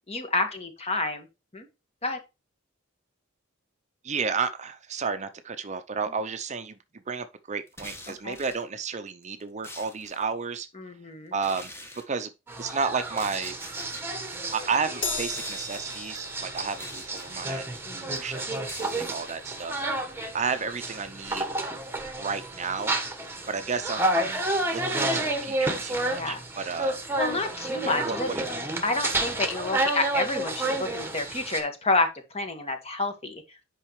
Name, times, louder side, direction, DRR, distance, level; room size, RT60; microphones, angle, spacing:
voice 1, 0.1-1.3 1.5-1.7 2.0-2.2 8.2-8.4 10.8-11.3 17.9-18.2 26.0-26.4 27.2-28.4 28.8-33.4, left 2 dB, 30° left, 1.7 m, -29 dB
voice 2, 4.0-6.8 7.1-10.7 11.3-11.7 12.1-12.3 12.6-13.5 14.5-17.6 17.9-19.8 20.3-21.5 22.2-22.9 23.5-27.0 27.8-28.4, right 5 dB, 35° right, 0.6 m, -32 dB
sound 1, 7.7-8.6 9.2-10.3 11.4-12.0 13.0-14.0 15.1-15.8 16.6-17.4 18.1-19.1, left 1 dB, 15° left, 1.5 m, -44 dB
sound 2, 12.5-31.6, right 2 dB, 10° right, 1.3 m, -30 dB
Crash cymbal, 15.0-21.6 22.0-22.2 23.2-23.3, left 3 dB, 60° left, 4.6 m, -40 dB
8.9 x 5.5 x 3.2 m
head